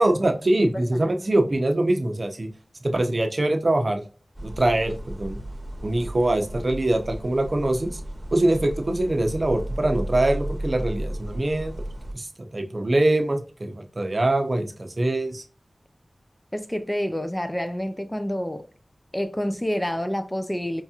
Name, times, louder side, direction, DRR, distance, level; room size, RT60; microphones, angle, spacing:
voice 1, 0.0-2.5 2.8-4.0 4.4-5.4 5.8-8.0 8.3-11.7 12.1-12.3 12.5-15.4, right 1 dB, 50° right, 0.6 m, -23 dB
voice 2, 0.5-1.2 16.5-18.7 19.1-20.8, equal, 15° left, 0.3 m, -28 dB
sound 1, 4.4-12.1, right 1 dB, 15° right, 0.9 m, -34 dB
4.6 x 2.8 x 2.3 m
wide cardioid pair, 75°, 0 cm